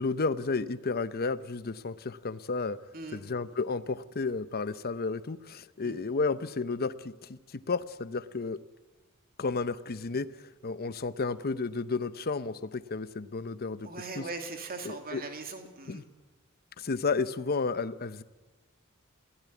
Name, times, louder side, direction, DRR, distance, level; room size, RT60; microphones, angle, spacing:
voice 1, 0.0-2.8 3.1-8.6 9.4-13.9 14.2-14.3 14.8-15.2 15.9-16.0 16.8-18.2, left 4 dB, 45° left, 15 dB, 0.7 m, -32 dB
voice 2, 2.9-3.2 5.8-6.0 13.8-16.1, right 3 dB, 45° right, 5 dB, 2.5 m, -40 dB
23.0 x 16.0 x 8.4 m, 1.3 s
head